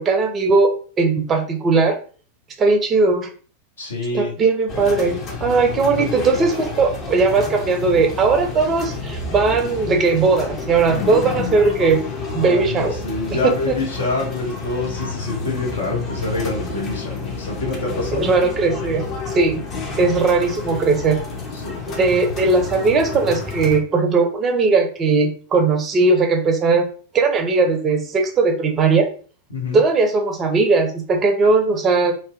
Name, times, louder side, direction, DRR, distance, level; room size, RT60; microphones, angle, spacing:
voice 1, 0.0-2.0 2.6-3.3 4.1-12.0 12.3-13.0 13.4-13.8 18.1-19.6 20.0-21.2 22.0-26.9 27.1-29.1 29.7-32.1, right 4 dB, 25° right, 4 dB, 0.5 m, -18 dB
voice 2, 3.8-4.3 6.0-6.1 12.2-18.3 21.5-22.0 29.5-29.8, left 2 dB, 70° left, -1 dB, 0.8 m, -26 dB
sound 1, 4.7-23.8, left 4 dB, 30° left, 0.6 m, -30 dB
2.6 x 2.1 x 2.4 m, 0.40 s
figure-of-eight pair, 90°, 0 cm